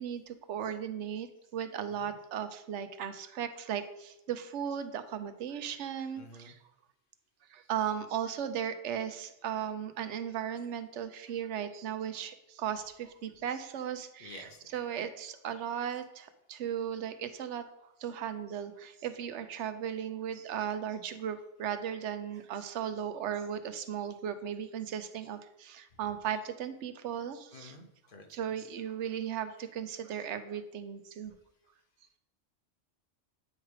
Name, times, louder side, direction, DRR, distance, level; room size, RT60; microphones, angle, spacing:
voice 1, 0.0-6.6 7.5-17.7 18.0-27.8 28.3-31.3, right 9 dB, 80° right, 10 dB, 0.9 m, -36 dB
voice 2, 6.1-6.6 7.7-7.9 14.2-14.6 27.5-28.5, left 2 dB, 50° left, 5 dB, 0.9 m, -51 dB
8.7 x 3.2 x 4.7 m, 0.88 s
omnidirectional pair, 1.2 m